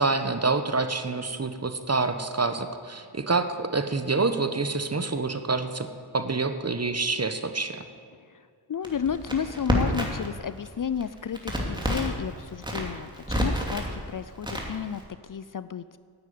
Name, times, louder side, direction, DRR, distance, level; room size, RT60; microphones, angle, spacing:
voice 1, 0.0-5.9 6.1-7.8, right 3 dB, 35° right, 9 dB, 1.1 m, -27 dB
voice 2, 8.7-16.0, left 7 dB, 45° left, 15 dB, 0.5 m, -32 dB
Crackle, 8.8-10.3 10.6-12.2 12.6-13.9 14.4-15.0, equal, 10° right, 2.7 m, -28 dB
9.9 x 9.3 x 9.4 m, 2.2 s
cardioid pair, 40°, 44 cm